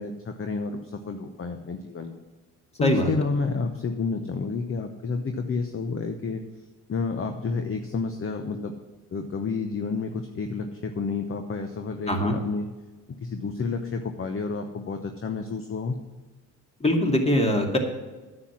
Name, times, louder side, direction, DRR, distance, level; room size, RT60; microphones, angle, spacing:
voice 1, 0.0-2.2 2.8-6.4 6.9-8.7 9.1-12.7 13.1-16.0, left 4 dB, 35° left, 6 dB, 1.0 m, -30 dB
voice 2, 16.8-17.8, left 1 dB, 15° left, 2 dB, 2.4 m, -22 dB
9.8 x 7.8 x 6.2 m, 1.3 s
hypercardioid pair, 65°, 39 cm